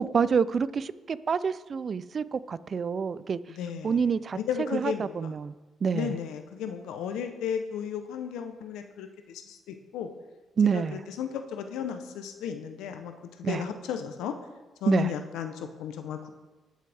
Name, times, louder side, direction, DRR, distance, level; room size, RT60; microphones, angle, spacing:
voice 1, 0.0-3.4 3.8-4.4 4.7-5.5 5.8-6.2 10.6-11.0 13.4-13.6 14.9-15.1, right 6 dB, 45° right, 17 dB, 0.4 m, -27 dB
voice 2, 3.5-4.1 4.3-5.4 5.9-10.1 10.7-13.1 13.4-14.3 14.8-16.3, left 8 dB, 90° left, 7 dB, 0.8 m, -34 dB
18.0 x 6.5 x 3.5 m, 1.2 s
cardioid pair, 90°, 0 cm